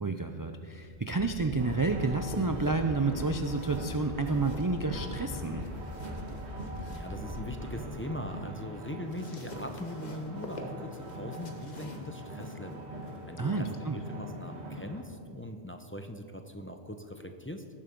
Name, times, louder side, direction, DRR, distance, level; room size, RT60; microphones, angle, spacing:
voice 1, 0.0-5.6 13.4-14.0, right 3 dB, 35° right, 6 dB, 0.3 m, -30 dB
sound 1, 1.2-1.5 1.8-2.1 2.4-2.7 3.0-3.3 3.6-3.9 4.2-4.5 4.8-5.1 5.4-5.6 6.0-6.3 6.6-6.8 7.2-7.5, left 2 dB, 60° left, 2.8 m, -41 dB
sound 2, 1.5-3.1 3.5-7.8 8.2-14.8, left 2 dB, 40° left, 1.2 m, -50 dB
sound 3, 1.6-15.0, right 1 dB, 80° right, 1.6 m, -42 dB
voice 2, 6.9-12.9 13.3-17.7, left 1 dB, 15° left, 5 dB, 0.6 m, -41 dB
18.5 x 7.4 x 5.2 m, 2.3 s
omnidirectional pair, 1.1 m